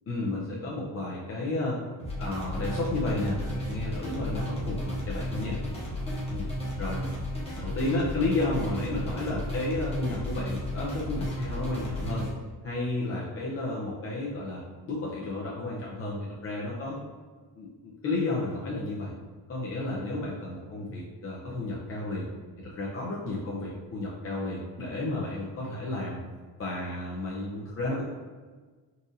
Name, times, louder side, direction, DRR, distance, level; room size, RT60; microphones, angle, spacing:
voice 1, 0.1-1.8 2.2-5.6 6.3-6.5 6.8-7.0 7.6-12.3 12.6-17.0 17.6-19.1 19.5-22.3 22.6-26.2 26.6-28.0, left 2 dB, 35° left, -5 dB, 0.5 m, -32 dB
sound 1, 2.0-12.3, left 1 dB, 15° left, 0.9 m, -33 dB
4.0 x 2.5 x 2.6 m, 1.4 s
cardioid pair, 135°, 39 cm